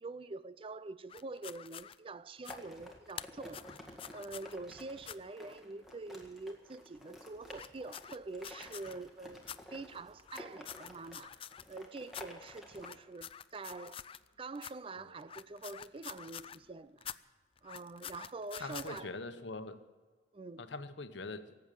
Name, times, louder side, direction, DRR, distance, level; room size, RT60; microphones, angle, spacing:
voice 1, 0.0-3.6 4.1-11.3 11.7-14.1 14.4-17.0 17.6-19.1 20.3-20.7, right 3 dB, 30° right, 0.4 m, -45 dB
sound 1, 1.1-1.9 2.4-2.6 3.1-4.5 5.0-5.2 7.5-8.9 9.4-9.6 10.2-11.8 12.1-12.2 12.7-14.3 14.5-14.7 15.2-16.6 17.0-17.2 17.6-19.0, left 9 dB, 30° left, 0.4 m, -47 dB
sound 2, 2.5-12.9, left 1 dB, ahead, 1.9 m, -52 dB
voice 2, 18.6-19.8 20.6-21.6, left 3 dB, 75° left, 1.0 m, -43 dB
18.0 x 8.1 x 9.1 m
head